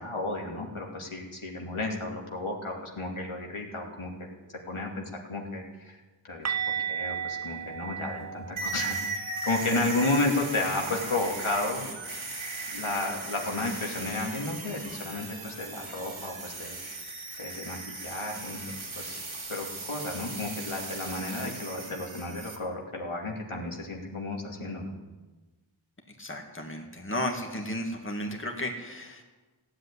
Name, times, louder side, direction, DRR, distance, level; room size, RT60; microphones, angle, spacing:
voice 1, 0.0-4.1 4.7-6.0 6.3-6.5 6.9-11.9 12.7-16.8 17.4-19.2 19.5-24.9, left 2 dB, 85° left, 0 dB, 2.7 m, -32 dB
sound 1, 6.5-12.2 12.5-12.7 13.1-13.2 16.5-16.6, right 8 dB, 35° right, 0.5 m, -37 dB
sound 2, 8.6-22.6, right 3 dB, 75° right, 2.4 m, -38 dB
voice 2, 26.2-29.2, left 1 dB, 25° left, 2 dB, 2.1 m, -34 dB
15.5 x 8.0 x 10.0 m, 1.2 s
wide cardioid pair, 45°, 48 cm